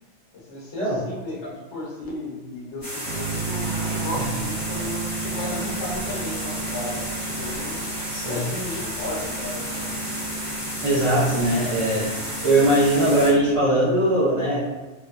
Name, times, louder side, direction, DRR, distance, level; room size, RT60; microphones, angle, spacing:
voice 1, 0.3-7.8 8.3-10.1, left 1 dB, 85° left, -5 dB, 1.1 m, -34 dB
sound 1, 2.8-13.3, equal, 35° left, 0.6 m, -32 dB
sound 2, 3.0-13.6, right 4 dB, 85° right, 0.9 m, -34 dB
voice 2, 10.8-12.1 12.4-14.6, right 1 dB, 45° right, -9 dB, 0.4 m, -20 dB
2.7 x 2.1 x 2.3 m, 1.1 s
omnidirectional pair, 1.2 m